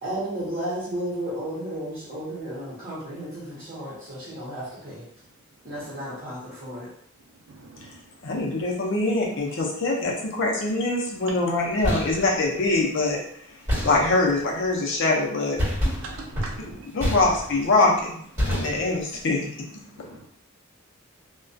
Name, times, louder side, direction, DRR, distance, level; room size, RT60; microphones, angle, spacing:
voice 1, 0.0-5.1 5.6-6.9, right 1 dB, 40° right, -11 dB, 0.8 m, -33 dB
voice 2, 7.5-8.0 8.3-8.4 16.0-16.9 18.4-18.7 20.0-20.2, right 3 dB, 70° right, -1 dB, 0.4 m, -42 dB
voice 3, 8.2-13.2 13.8-15.6 16.9-19.8, left 2 dB, 60° left, -1 dB, 0.6 m, -24 dB
sound 1, 11.6-12.3 13.7-14.4 15.6-17.7 18.4-19.1, equal, 20° right, 1.3 m, -28 dB
2.3 x 2.2 x 2.5 m, 0.66 s
head